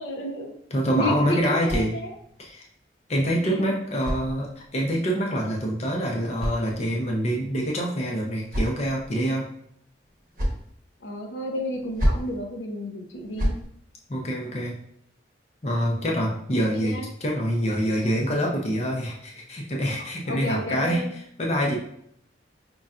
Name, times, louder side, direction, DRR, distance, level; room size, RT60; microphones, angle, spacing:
voice 1, 0.0-0.5 1.0-2.1 3.4-3.6 11.0-13.6 16.5-17.1 18.0-18.1 20.3-21.1, equal, 80° left, 2 dB, 0.6 m, -31 dB
voice 2, 0.7-2.0 2.4-2.6 3.1-9.5 14.1-14.8 15.6-21.0 21.4-21.8, equal, 35° left, -1 dB, 0.6 m, -26 dB
sound 1, 1.3-2.4 3.4-4.9 5.9-7.2 8.0-9.1 10.0-10.7 11.7-12.4 13.1-13.7, equal, 45° right, 0.9 m, -31 dB
5.3 x 2.3 x 2.4 m, 0.70 s
head